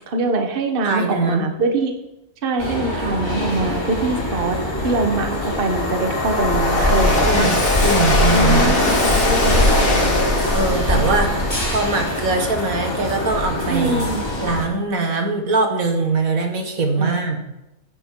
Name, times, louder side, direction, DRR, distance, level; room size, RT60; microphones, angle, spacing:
voice 1, 0.1-1.9 2.4-4.6 4.8-5.3 5.6-7.5 8.3-10.2 10.9-11.3 13.7-14.2 17.0-17.2, right 3 dB, 40° right, 5 dB, 1.2 m, -23 dB
voice 2, 0.8-1.5 7.3-8.8 10.5-11.3 11.7-14.1 14.4-17.5, right 3 dB, 70° right, 4 dB, 2.0 m, -22 dB
sound 1, 2.6-14.6, left 1 dB, 20° left, 2.7 m, -23 dB
Train, 3.0-3.1 3.5-13.9, left 2 dB, 70° left, 2.6 m, -23 dB
16.0 x 9.8 x 3.8 m, 0.93 s
omnidirectional pair, 1.5 m